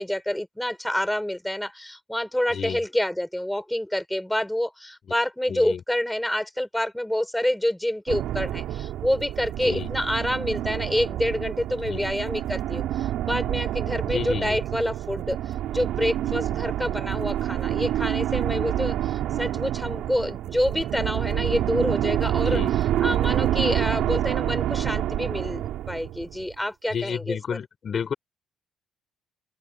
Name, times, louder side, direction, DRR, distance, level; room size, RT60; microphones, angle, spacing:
voice 1, 0.0-15.4 15.7-25.6 25.9-27.6, left 1 dB, 5° left, 6.8 m, -27 dB
voice 2, 5.5-5.8 9.6-9.9 11.8-12.1 14.1-14.6 22.5-22.7 26.9-28.1, left 7 dB, 50° left, 4.7 m, -30 dB
sound 1, 8.1-26.5, right 12 dB, 85° right, 6.9 m, -27 dB
open air
cardioid pair, 90°, 0 cm